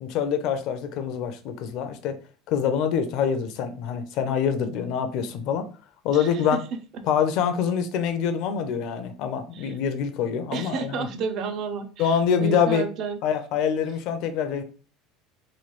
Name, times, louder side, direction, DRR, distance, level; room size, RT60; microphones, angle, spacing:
voice 1, 0.0-2.2 2.5-5.6 6.0-6.6 7.1-11.1 12.0-12.8 13.2-14.6, left 7 dB, 50° left, 0.5 m, -25 dB
voice 2, 6.1-6.6 6.9-7.0 9.5-9.8 10.5-13.2, right 5 dB, 40° right, 0.4 m, -31 dB
3.1 x 2.2 x 3.0 m
cardioid pair, 165°, 0 cm